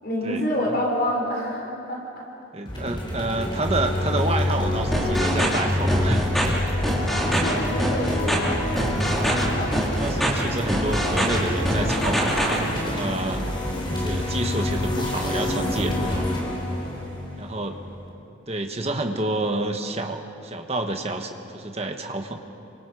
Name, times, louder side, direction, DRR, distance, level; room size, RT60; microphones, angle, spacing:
voice 1, 0.0-2.0 7.3-9.9, left 1 dB, 50° left, -1 dB, 4.0 m, -28 dB
voice 2, 2.5-6.8 10.0-13.5 13.9-16.4 17.4-17.8 18.5-22.4, right 2 dB, 30° right, 4 dB, 1.4 m, -29 dB
sound 1, 2.7-18.1, left 1 dB, 25° left, 4.0 m, -27 dB
sound 2, 4.9-5.6 5.9-6.4 6.8-7.5 7.8-8.4 8.8-9.4 9.7-10.3 10.7-11.4 11.7-12.6, equal, ahead, 3.2 m, -24 dB
28.5 x 25.0 x 4.9 m, 2.8 s
head